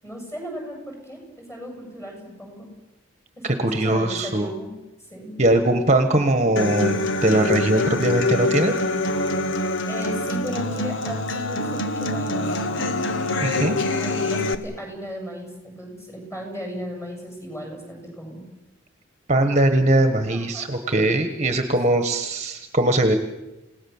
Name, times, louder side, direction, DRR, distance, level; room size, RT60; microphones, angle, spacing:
voice 1, 0.0-2.7 3.4-4.7 5.1-5.4 9.9-12.5 13.3-18.4 20.3-20.7, equal, 15° left, 1 dB, 7.8 m, -36 dB
voice 2, 3.4-4.5 5.4-8.8 13.4-13.8 19.3-23.1, right 1 dB, 35° right, 7 dB, 1.4 m, -20 dB
Human voice / Acoustic guitar, 6.6-14.5, left 2 dB, 65° left, 1.4 m, -25 dB
28.5 x 18.0 x 7.3 m, 1.0 s
head